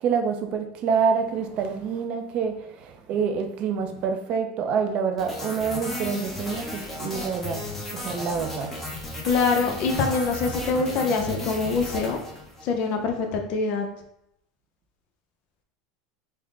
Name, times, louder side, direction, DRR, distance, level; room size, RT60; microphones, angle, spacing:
voice 1, 0.0-7.6 8.0-8.7, right 6 dB, 45° right, 4 dB, 0.5 m, -27 dB
sound 1, 5.2-12.7, left 1 dB, 10° left, 0.9 m, -34 dB
voice 2, 9.2-12.2 12.6-13.9, left 4 dB, 50° left, 4 dB, 0.6 m, -24 dB
3.5 x 2.1 x 3.7 m, 0.79 s
supercardioid pair, 130°, 3 cm